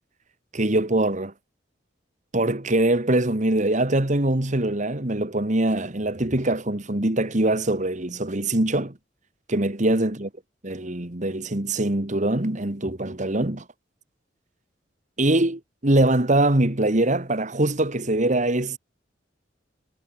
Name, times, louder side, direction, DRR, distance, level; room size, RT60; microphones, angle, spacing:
voice 1, 0.5-1.3 2.3-8.9 9.5-10.3 10.6-13.6 15.2-18.8, right 1 dB, 40° right, 2.0 m, -23 dB
head